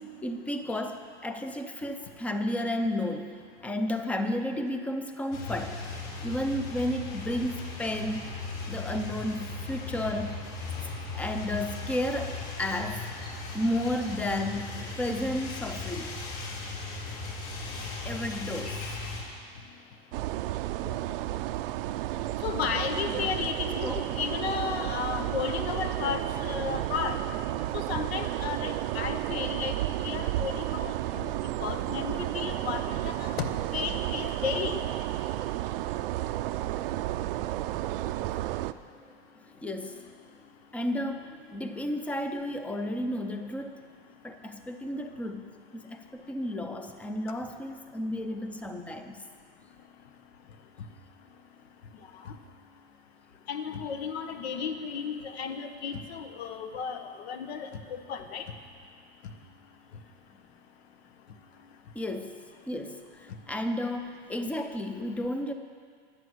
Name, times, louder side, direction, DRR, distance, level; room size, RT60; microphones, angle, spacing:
voice 1, 0.0-3.3 3.6-5.9 6.2-8.2 8.7-10.5 11.1-13.1 13.5-16.2 18.0-18.8 23.1-23.3 23.8-24.0 39.6-40.0 40.7-43.8 44.2-45.4 45.7-49.2 61.9-63.0 63.5-65.5, left 1 dB, 5° left, 7 dB, 0.5 m, -32 dB
sound 1, 5.3-19.2, left 3 dB, 50° left, 3.6 m, -37 dB
sound 2, 20.1-38.7, right 15 dB, 60° right, 0.6 m, -32 dB
voice 2, 22.4-27.2 27.7-31.3 31.6-33.4 33.7-34.8 52.2-52.3 53.5-58.4, left 6 dB, 80° left, 7 dB, 1.4 m, -33 dB
23.5 x 8.1 x 6.3 m, 2.1 s
supercardioid pair, 165°, 31 cm